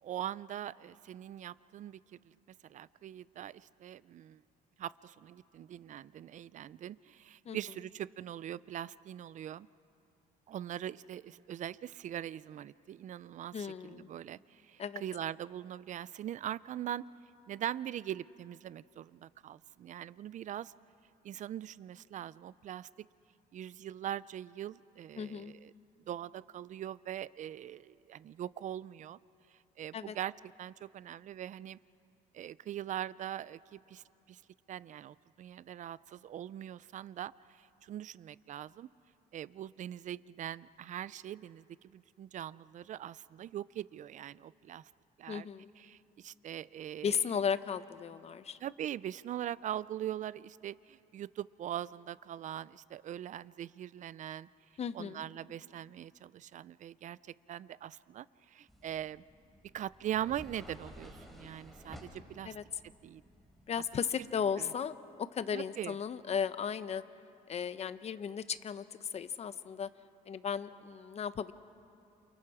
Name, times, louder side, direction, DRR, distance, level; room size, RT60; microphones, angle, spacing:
voice 1, 0.0-2.3 2.6-4.4 4.8-9.7 10.5-17.0 17.5-20.7 21.2-22.9 23.5-25.7 26.1-29.2 29.8-30.3 30.6-31.8 32.3-34.4 34.7-38.9 39.3-44.9 45.2-45.5 45.8-47.2 48.6-54.5 54.9-57.2 57.5-59.2 59.7-62.6 63.0-63.2 64.6-64.7 65.5-66.0, right 11 dB, 45° right, 19 dB, 0.5 m, -42 dB
voice 2, 13.5-14.1 14.8-15.0 25.2-25.5 29.9-30.1 45.3-45.7 47.0-48.6 54.8-55.2 62.4-62.6 63.7-67.0 67.5-69.9 70.3-71.5, left 7 dB, 40° left, 13 dB, 0.8 m, -35 dB
sound 1, 58.7-64.2, equal, ahead, 3.6 m, -54 dB
29.0 x 28.5 x 4.9 m, 2.6 s
cardioid pair, 110°, 17 cm